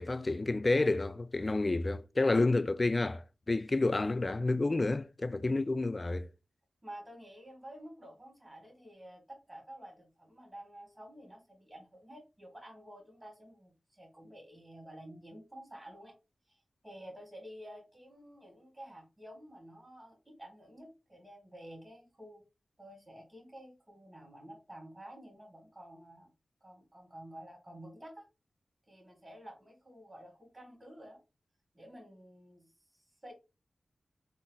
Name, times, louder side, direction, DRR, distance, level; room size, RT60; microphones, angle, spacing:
voice 1, 0.0-6.3, left 2 dB, 40° left, 0.3 m, -30 dB
voice 2, 6.8-16.1 16.5-22.4 22.8-26.3 26.6-28.2 28.9-31.2 31.7-32.7 32.9-33.3, equal, 30° right, 1.9 m, -51 dB
3.8 x 2.0 x 3.9 m
cardioid pair, 45°, 0 cm